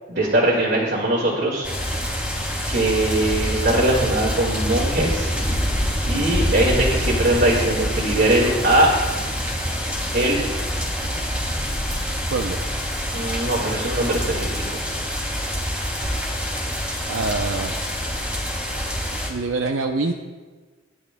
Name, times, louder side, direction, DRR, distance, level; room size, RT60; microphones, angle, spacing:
voice 1, 0.1-1.7 2.7-5.3 5.7-5.8 6.0-8.9 10.1-10.4 13.1-14.8, right 1 dB, 55° right, -5 dB, 2.0 m, -21 dB
sound 1, 1.6-19.3, equal, 5° right, 2.5 m, -26 dB
voice 2, 17.1-17.8 19.3-20.1, right 3 dB, 75° right, 3 dB, 0.6 m, -25 dB
19.0 x 11.0 x 2.2 m, 1.4 s
head